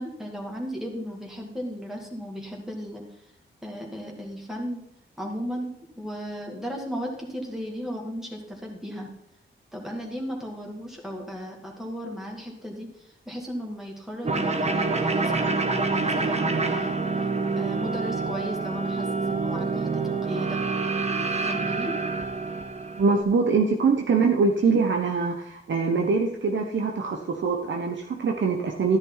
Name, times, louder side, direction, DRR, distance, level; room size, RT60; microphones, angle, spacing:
voice 1, 0.0-3.0 3.6-4.8 5.2-9.1 9.7-16.9 17.5-20.6 21.4-21.9, equal, ahead, -1 dB, 2.4 m, -35 dB
sound 1, 14.2-23.2, right 3 dB, 30° right, 1.3 m, -27 dB
voice 2, 23.0-29.0, right 4 dB, 65° right, 2 dB, 1.2 m, -23 dB
13.5 x 9.8 x 4.1 m, 0.76 s
wide cardioid pair, 100°, 21 cm